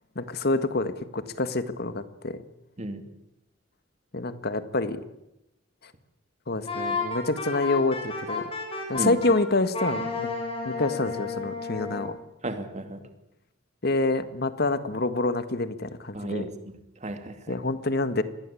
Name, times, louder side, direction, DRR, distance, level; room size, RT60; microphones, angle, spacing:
voice 1, 0.1-2.4 4.1-5.0 6.5-8.5 8.9-10.3 10.6-12.2 13.8-16.5 17.5-18.2, left 2 dB, 55° left, 11 dB, 1.7 m, -27 dB
Wind instrument woodwind instrument, 6.7-9.3 9.7-12.1, left 4 dB, 30° left, 7.8 m, -32 dB
voice 2, 12.4-13.0 16.1-17.6, right 1 dB, 35° right, 7 dB, 2.7 m, -34 dB
26.0 x 20.5 x 8.6 m, 0.88 s
head